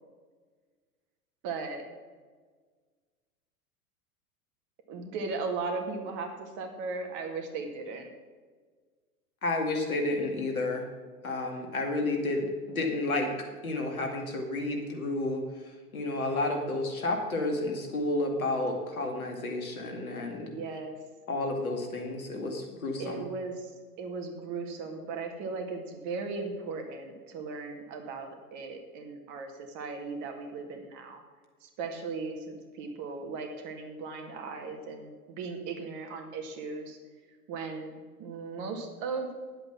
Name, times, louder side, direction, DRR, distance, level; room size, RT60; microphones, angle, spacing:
voice 1, 1.4-1.8 4.9-8.1 20.3-21.0 23.0-23.7 24.0-31.2 31.6-35.1 35.4-37.0 37.5-39.3, right 4 dB, 40° right, 4 dB, 2.1 m, -37 dB
voice 2, 9.4-10.9 11.2-13.3 13.6-20.5 21.3-23.2, left 2 dB, 75° left, 2 dB, 2.4 m, -31 dB
10.5 x 8.0 x 5.9 m, 1.5 s
figure-of-eight pair, 90°, 43 cm